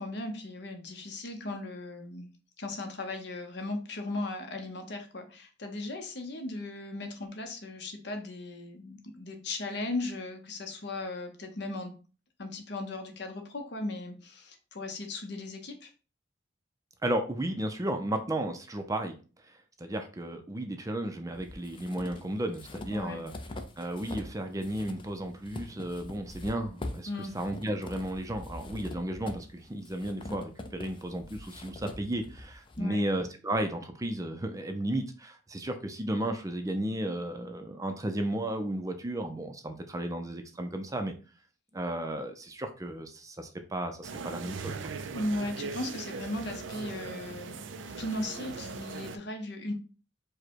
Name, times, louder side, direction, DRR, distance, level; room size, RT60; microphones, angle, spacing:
voice 1, 0.0-2.3 2.6-12.0 12.4-15.9 22.9-23.2 27.1-27.3 32.8-33.0 45.1-49.7, left 2 dB, 65° left, 5 dB, 0.9 m, -37 dB
voice 2, 17.0-19.2 19.8-23.3 23.8-41.1 41.7-44.8, right 1 dB, 20° right, 6 dB, 0.5 m, -34 dB
sound 1, 21.3-24.4 24.6-32.8, left 1 dB, 30° left, 0.5 m, -43 dB
sound 2, 44.0-49.2, right 5 dB, 90° right, 0.5 m, -40 dB
4.9 x 2.2 x 4.5 m, 0.35 s
head